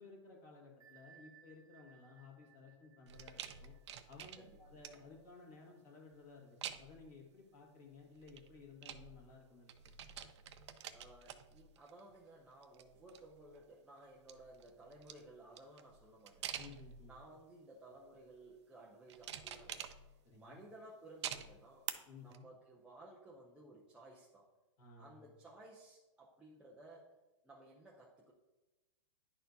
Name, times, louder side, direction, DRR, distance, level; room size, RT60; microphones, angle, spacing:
voice 1, 0.0-3.7 4.1-9.9 16.6-17.2 20.3-20.6 22.1-22.5 24.8-25.3, left 4 dB, 35° left, -2 dB, 1.6 m, -57 dB
Bell, 0.8-6.2, right 8 dB, 90° right, 1.3 m, -67 dB
sound 1, 3.1-5.2 6.6-7.1 8.1-9.4 9.7-12.1 12.5-13.6 14.1-17.3 17.9-18.3 19.1-20.4 21.2-21.9 22.3-22.4, right 9 dB, 60° right, 0.5 m, -48 dB
voice 2, 10.9-16.6 17.1-19.9 20.4-21.9 22.2-24.5 25.0-27.1 27.4-28.3, right 2 dB, 5° right, -5 dB, 0.4 m, -57 dB
10.5 x 4.2 x 2.6 m, 1.1 s
hypercardioid pair, 160°, 17 cm